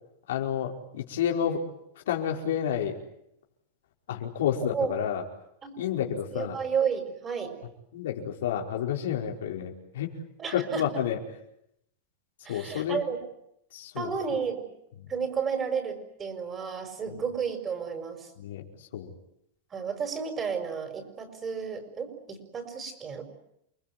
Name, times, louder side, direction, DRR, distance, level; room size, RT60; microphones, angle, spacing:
voice 1, 0.3-1.6 2.1-3.0 4.1-5.2 5.8-6.6 7.9-10.1 10.5-11.2 12.5-13.0 13.7-14.1 18.4-18.6 18.9-19.2, left 9 dB, 85° left, 1 dB, 5.0 m, -30 dB
voice 2, 6.3-7.6 10.4-10.8 12.4-13.2 14.0-14.7 15.1-18.3 19.7-23.2, right 6 dB, 20° right, 7 dB, 6.0 m, -32 dB
29.5 x 20.5 x 9.4 m, 0.78 s
supercardioid pair, 150°, 0 cm